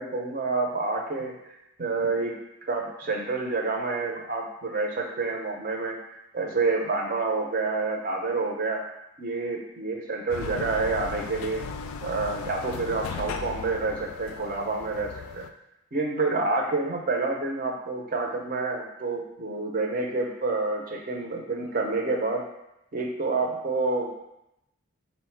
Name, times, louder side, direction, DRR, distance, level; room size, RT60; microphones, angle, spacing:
voice 1, 0.0-1.3 1.8-6.0 6.3-8.8 9.2-11.6 12.0-15.5 15.9-22.4 22.9-24.1, right 3 dB, 40° right, 1 dB, 0.5 m, -28 dB
sound 1, 10.3-15.5, left 5 dB, 80° left, 0.3 m, -37 dB
5.1 x 2.1 x 4.4 m, 0.87 s
head